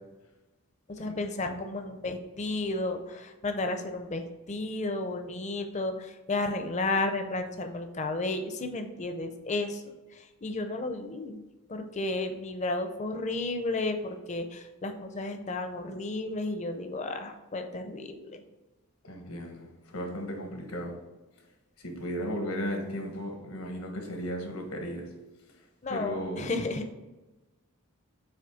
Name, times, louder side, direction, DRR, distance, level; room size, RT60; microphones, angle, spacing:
voice 1, 0.9-11.4 11.7-18.4 25.8-26.9, left 2 dB, 30° left, 6 dB, 0.6 m, -33 dB
voice 2, 19.0-21.0 21.8-25.1 25.9-26.5, equal, 80° left, 2 dB, 1.4 m, -35 dB
7.8 x 3.1 x 5.0 m, 1.1 s
head